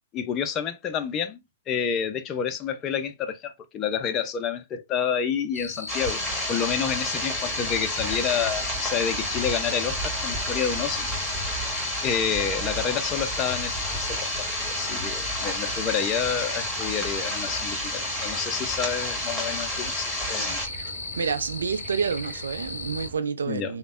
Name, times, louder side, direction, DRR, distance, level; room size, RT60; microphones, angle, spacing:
voice 1, 0.1-1.4 1.7-11.1 12.0-20.6 23.5-23.7, left 7 dB, 25° left, 0.4 m, -29 dB
sound 1, 5.5-23.1, left 3 dB, 85° left, 0.5 m, -36 dB
sound 2, 5.9-20.7, left 1 dB, ahead, 1.6 m, -31 dB
sound 3, 6.1-23.1, right 6 dB, 40° right, 0.7 m, -44 dB
voice 2, 21.2-23.8, right 6 dB, 70° right, 0.4 m, -28 dB
3.3 x 2.1 x 2.4 m
figure-of-eight pair, 115°, 0 cm